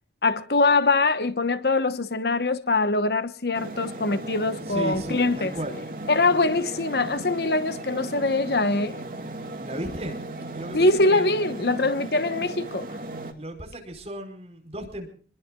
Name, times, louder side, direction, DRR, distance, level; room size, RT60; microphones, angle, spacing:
voice 1, 0.2-5.5 6.1-9.0 10.7-12.9, left 3 dB, 65° left, 1.1 m, -23 dB
sound 1, 3.5-13.3, right 1 dB, 50° right, 2.4 m, -36 dB
voice 2, 4.7-5.8 9.6-10.2 10.5-11.3 13.4-15.1, right 1 dB, 35° right, 4.9 m, -35 dB
27.0 x 21.5 x 2.4 m
head